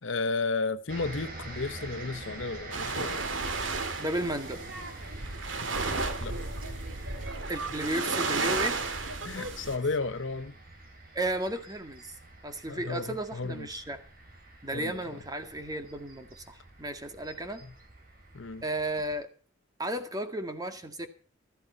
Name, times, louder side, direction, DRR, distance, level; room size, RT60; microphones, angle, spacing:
voice 1, 0.0-3.2 6.2-6.4 7.6-7.7 9.2-10.5 12.7-13.8 14.7-15.0 17.6-17.7 18.3-18.6, left 3 dB, 80° left, 1.0 m, -33 dB
sound 1, 0.9-19.2, right 2 dB, 50° right, 5.0 m, -47 dB
sound 2, 2.7-9.8, right 3 dB, 90° right, 2.3 m, -33 dB
voice 2, 4.0-4.6 7.5-8.8 11.1-12.1 12.4-14.0 14.6-17.6 18.6-19.3 19.8-21.1, right 1 dB, 20° right, 1.9 m, -34 dB
16.0 x 13.5 x 4.1 m
head